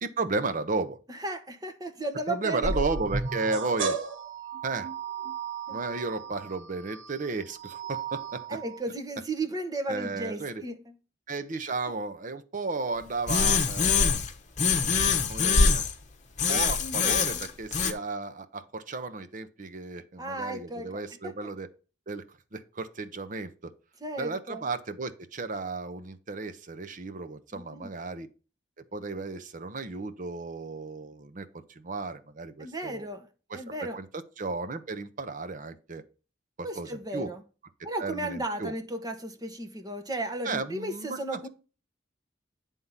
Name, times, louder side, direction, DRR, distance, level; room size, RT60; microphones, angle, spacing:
voice 1, 0.0-1.0 2.3-4.0 4.6-4.9 5.7-8.6 9.9-10.6 11.3-14.2 15.3-15.9 16.5-21.7 22.1-22.2 22.5-23.7 24.2-28.3 28.8-33.1 33.5-34.1 34.4-36.0 36.8-37.3 38.0-38.7 40.4-41.5, right 3 dB, 45° right, 0.8 m, -34 dB
voice 2, 1.1-2.9 5.7-5.8 8.5-10.9 16.8-17.5 20.2-20.9 21.2-21.3 24.0-24.7 27.5-27.9 32.6-33.3 33.5-34.0 36.6-37.4 37.8-41.5, right 2 dB, 20° right, 1.1 m, -35 dB
sound 1, 2.6-8.8, right 4 dB, 85° right, 1.1 m, -34 dB
sound 2, 13.3-14.3 14.6-15.9 16.4-17.9, left 5 dB, 40° left, 1.0 m, -24 dB
9.4 x 3.7 x 5.6 m
head